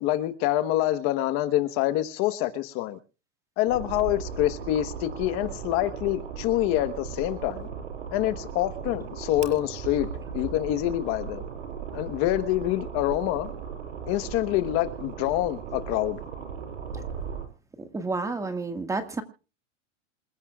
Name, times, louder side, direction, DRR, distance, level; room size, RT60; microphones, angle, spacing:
voice 1, 0.0-3.0 3.6-7.7 8.1-11.4 11.9-13.5 14.1-16.2, left 14 dB, 35° left, 1.2 m, -26 dB
sound 1, 3.7-17.5, right 7 dB, 90° right, 6.2 m, -37 dB
voice 2, 17.9-19.2, right 3 dB, 10° right, 1.8 m, -30 dB
27.5 x 15.5 x 2.4 m
supercardioid pair, 160°, 37 cm